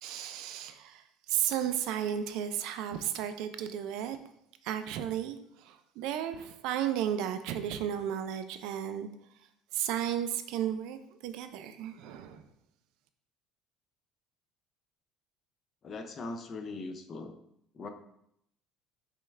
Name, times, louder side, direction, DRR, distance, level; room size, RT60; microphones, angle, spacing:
voice 1, 0.0-4.2 4.6-9.1 9.7-11.0 11.2-12.4, right 10 dB, 60° right, 9 dB, 0.3 m, -34 dB
voice 2, 15.8-17.3 17.7-17.9, left 3 dB, 25° left, 7 dB, 0.3 m, -40 dB
5.4 x 2.3 x 3.2 m, 0.75 s
cardioid pair, 175°, 0 cm